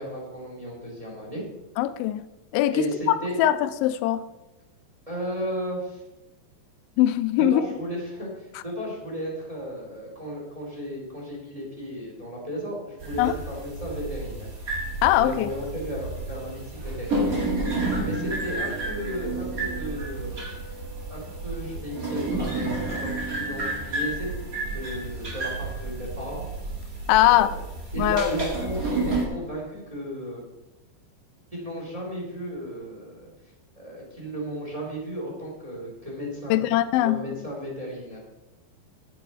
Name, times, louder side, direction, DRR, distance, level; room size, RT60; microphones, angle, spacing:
voice 1, 0.0-1.4 2.7-3.4 5.1-6.0 7.4-14.5 15.1-17.6 17.9-20.4 21.1-24.3 24.7-26.5 27.2-27.6 27.9-30.4 31.5-33.3 33.8-36.6 37.0-38.2, equal, 10° right, -4 dB, 2.0 m, -34 dB
voice 2, 1.8-2.2 2.5-4.2 7.0-7.6 13.2-13.3 15.0-15.5 27.1-27.5 28.0-28.3 36.5-37.2, left 13 dB, 90° left, 12 dB, 2.9 m, -21 dB
sound 1, 13.0-29.2, right 2 dB, 90° right, 0.7 m, -30 dB
10.5 x 8.5 x 5.4 m, 1.0 s
omnidirectional pair, 5.2 m